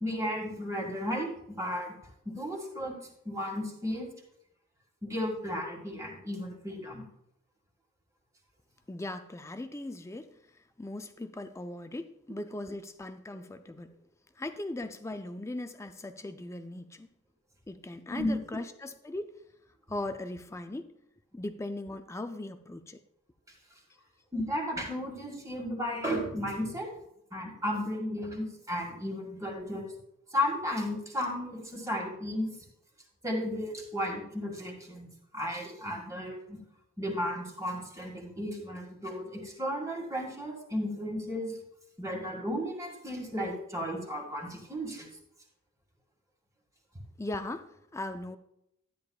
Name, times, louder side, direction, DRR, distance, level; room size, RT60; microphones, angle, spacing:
voice 1, 0.0-1.9 2.3-4.1 5.0-7.1 18.1-18.4 24.3-26.9 27.3-29.9 30.3-32.5 33.2-36.6 37.0-41.5 42.0-45.1, equal, 15° right, 1.9 m, -34 dB
voice 2, 8.9-10.4 10.8-13.9 14.4-17.1 17.7-19.4 19.9-20.9 21.3-23.0 47.2-48.4, left 2 dB, 15° left, 0.4 m, -39 dB
12.5 x 10.0 x 2.4 m
head